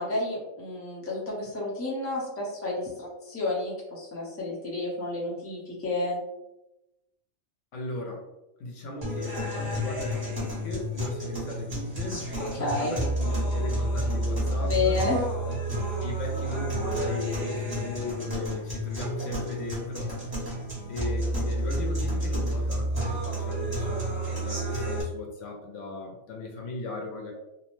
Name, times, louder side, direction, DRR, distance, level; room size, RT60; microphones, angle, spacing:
voice 1, 0.0-6.2 12.5-13.0 14.6-15.2, left 3 dB, 15° left, -5 dB, 0.6 m, -30 dB
voice 2, 7.7-8.3 8.6-15.0 15.4-20.4 20.9-27.3, left 2 dB, 70° left, 0 dB, 0.9 m, -37 dB
sound 1, 9.0-25.0, right 1 dB, 20° right, 0.9 m, -30 dB
2.8 x 2.0 x 3.0 m, 0.93 s
omnidirectional pair, 1.4 m